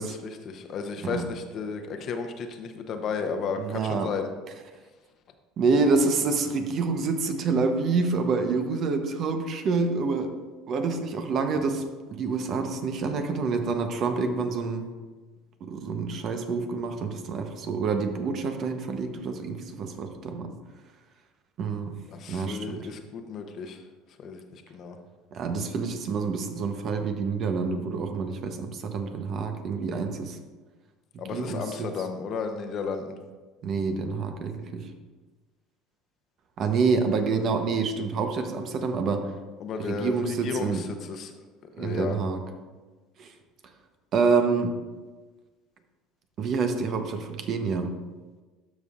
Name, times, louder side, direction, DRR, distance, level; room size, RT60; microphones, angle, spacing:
voice 1, 0.0-4.3 22.1-23.8 24.2-25.0 31.2-33.2 39.6-41.3 41.8-42.2, left 5 dB, 50° left, 6 dB, 0.8 m, -33 dB
voice 2, 3.6-4.1 5.6-10.3 10.7-14.9 15.6-20.5 21.6-22.0 22.3-22.8 25.3-30.4 31.3-31.9 33.6-34.8 36.6-39.3 39.8-40.8 41.8-42.4 43.2-43.3 44.1-44.8 46.4-47.9, right 4 dB, 50° right, 6 dB, 0.9 m, -27 dB
12.5 x 5.4 x 2.5 m, 1.3 s
supercardioid pair, 85°, 0 cm